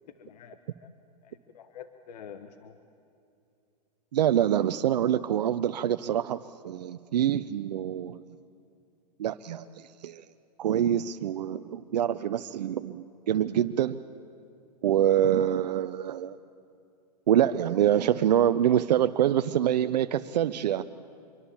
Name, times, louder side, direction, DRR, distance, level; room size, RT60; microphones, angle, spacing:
voice 1, 0.2-0.9 1.2-2.8, left 8 dB, 70° left, 9 dB, 1.4 m, -47 dB
voice 2, 4.1-8.2 9.2-10.2 10.6-14.0 14.8-16.4 17.3-20.9, right 10 dB, 75° right, 10 dB, 0.7 m, -25 dB
25.5 x 23.5 x 7.2 m, 2.6 s
hypercardioid pair, 120°, 21 cm